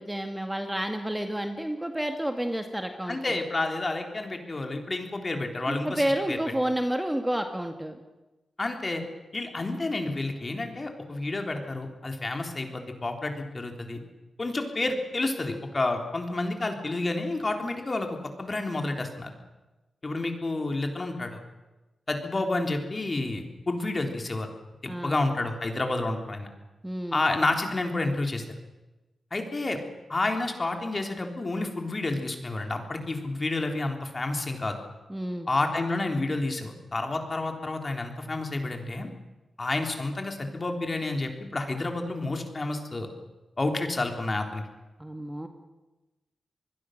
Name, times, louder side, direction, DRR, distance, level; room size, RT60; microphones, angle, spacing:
voice 1, 0.0-3.4 5.7-8.0 24.8-25.2 26.8-27.2 35.1-35.5 45.0-45.5, right 1 dB, 10° right, 5 dB, 2.0 m, -30 dB
voice 2, 3.1-6.4 8.6-9.0 9.3-14.0 14.4-19.3 20.0-21.4 22.1-24.5 24.8-26.5 27.1-28.4 29.3-29.8 30.1-34.8 35.5-39.1 39.6-43.1 43.6-44.6, left 2 dB, 35° left, 4 dB, 3.6 m, -30 dB
26.0 x 21.0 x 6.6 m, 1.1 s
cardioid pair, 85°, 0 cm